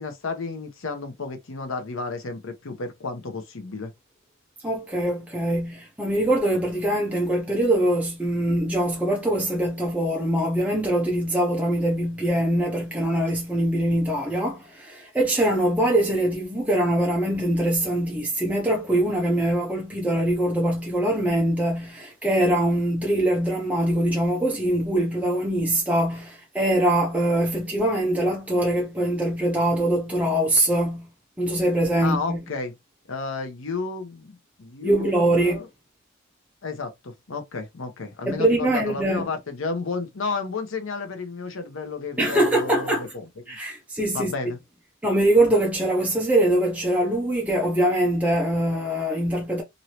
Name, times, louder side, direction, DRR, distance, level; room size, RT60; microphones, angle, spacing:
voice 1, 0.0-3.9 32.0-32.7 33.1-35.7 36.6-43.6 44.1-44.6, left 4 dB, 70° left, 0.8 m, -32 dB
voice 2, 4.6-31.1 31.4-32.4 34.8-35.6 38.3-39.3 42.2-43.1 43.5-44.3 45.0-49.6, right 1 dB, 5° right, 0.6 m, -23 dB
3.1 x 2.7 x 2.7 m
head